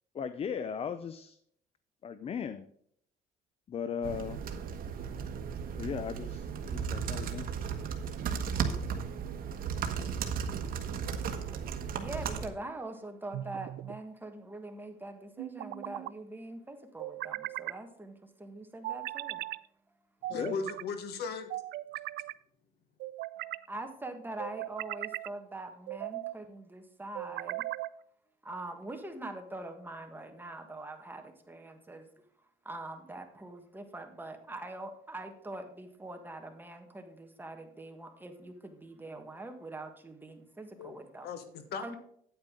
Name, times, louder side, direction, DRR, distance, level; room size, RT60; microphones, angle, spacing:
voice 1, 0.1-1.4 2.0-2.7 3.7-4.4 5.8-7.5 20.3-20.6, left 7 dB, 35° left, 13 dB, 0.5 m, -37 dB
sound 1, 4.0-12.5, right 7 dB, 60° right, 1.3 m, -35 dB
voice 2, 11.9-19.5 23.7-27.6 28.4-32.1 32.6-41.3 41.8-42.0, right 2 dB, 10° right, 5 dB, 1.5 m, -43 dB
sound 2, 13.3-14.0 15.4-16.1 17.0-17.8 18.8-19.6 20.2-20.9 21.5-22.3 23.0-23.7 24.4-25.3 25.9-26.4 27.1-28.0, right 17 dB, 75° right, 0.4 m, -38 dB
voice 3, 20.3-21.6 40.8-41.0 41.2-42.0, left 5 dB, 75° left, 9 dB, 1.4 m, -37 dB
9.2 x 8.9 x 3.7 m, 0.67 s
cardioid pair, 110°, 17 cm